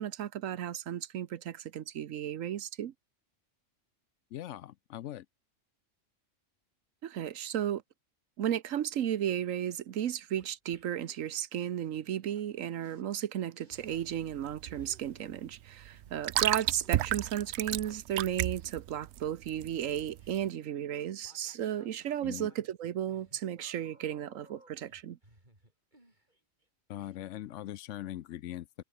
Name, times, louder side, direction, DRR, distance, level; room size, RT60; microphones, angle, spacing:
voice 1, 0.0-2.9 7.0-7.8 8.4-25.2, right 10 dB, 85° right, 1.2 m, -34 dB
voice 2, 4.3-5.3 22.2-22.5 26.9-28.8, left 13 dB, 70° left, 0.9 m, -41 dB
sound 1, 10.1-11.2 12.4-12.5 12.8-13.0 13.6-14.4 14.6-18.0 19.1-26.7 27.0-27.2, right 1 dB, 35° right, 7.3 m, -63 dB
sound 2, 13.7-20.4, right 13 dB, 65° right, 0.8 m, -34 dB
omnidirectional pair, 1.3 m